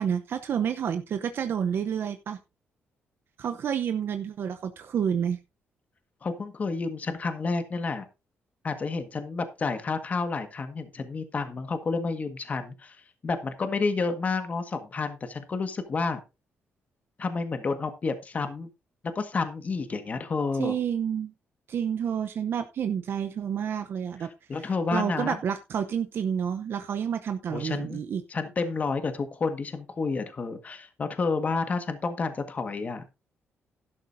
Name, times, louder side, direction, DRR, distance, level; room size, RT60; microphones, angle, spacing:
voice 1, 0.0-2.4 3.4-5.4 20.6-21.3 21.7-24.3 24.6-28.2, right 8 dB, 60° right, 8 dB, 0.8 m, -29 dB
voice 2, 6.2-8.0 8.6-13.0 13.2-16.2 17.2-18.7 19.1-20.7 24.5-25.4 27.5-28.0 28.3-33.0, left 4 dB, 35° left, 8 dB, 1.6 m, -30 dB
12.0 x 12.0 x 2.7 m, 0.26 s
cardioid pair, 125°, 4 cm